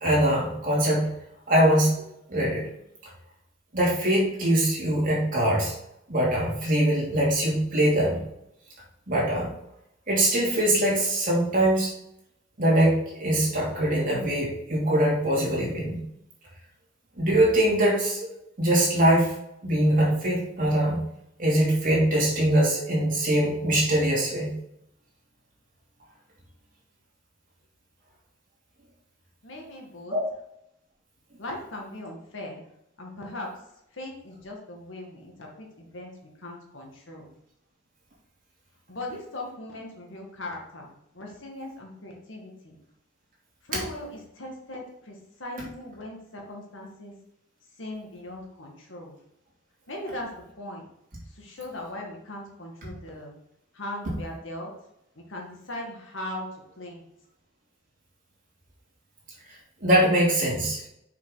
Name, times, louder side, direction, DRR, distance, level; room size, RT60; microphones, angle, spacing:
voice 1, 0.0-1.1 1.5-2.6 3.7-5.7 6.1-8.2 9.1-9.5 10.1-11.9 12.6-16.0 17.2-18.2 18.6-19.3 19.6-21.0 21.4-24.5 30.1-30.2 43.7-43.8 59.8-60.8, right 1 dB, 45° right, -4 dB, 3.0 m, -22 dB
voice 2, 29.4-30.2 31.4-32.6 33.0-33.5 33.9-36.1 36.4-37.3 38.9-42.8 43.7-47.1 47.8-49.1 49.9-50.3 50.6-50.8 51.4-53.3 53.7-54.7 55.3-56.5 56.8-57.0, left 1 dB, 75° left, 0 dB, 1.9 m, -39 dB
6.4 x 5.6 x 4.0 m, 0.79 s
head